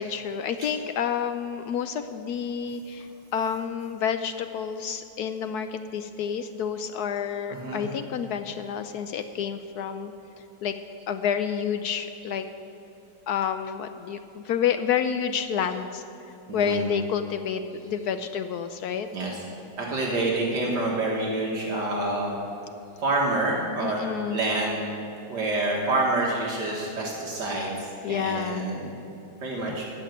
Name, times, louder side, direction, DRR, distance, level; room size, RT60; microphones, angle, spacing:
voice 1, 0.0-10.8 11.1-12.5 13.3-16.0 16.5-19.1 23.8-24.4 28.0-28.7 29.7-29.8, left 8 dB, 70° left, 9 dB, 0.9 m, -29 dB
voice 2, 7.5-7.9 16.5-16.9 19.1-19.4 19.8-22.3 23.0-24.0 24.3-24.8 25.3-28.9 29.4-29.8, right 2 dB, 65° right, -2 dB, 2.1 m, -27 dB
15.0 x 5.9 x 9.2 m, 2.9 s
omnidirectional pair, 2.0 m